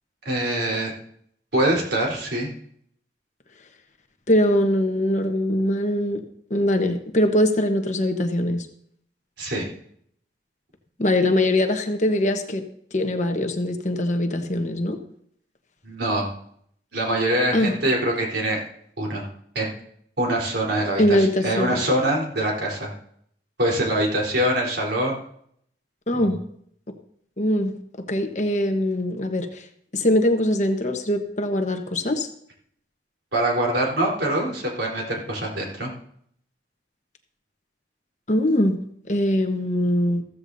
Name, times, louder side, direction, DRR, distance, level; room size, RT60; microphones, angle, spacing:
voice 1, 0.2-0.9 1.5-2.5 9.4-9.7 15.8-16.3 16.9-18.6 19.0-19.2 19.5-19.7 20.2-22.9 23.6-25.2 26.1-26.2 33.3-35.9, right 1 dB, 80° right, -2 dB, 4.0 m, -24 dB
voice 2, 4.3-6.2 6.5-8.7 11.0-12.6 12.9-15.0 17.5-17.8 21.0-21.8 26.1-26.4 27.4-27.7 28.1-29.6 29.9-32.3 38.3-38.8 39.1-40.2, left 1 dB, 40° left, 5 dB, 1.2 m, -22 dB
15.0 x 14.0 x 2.7 m, 0.66 s
head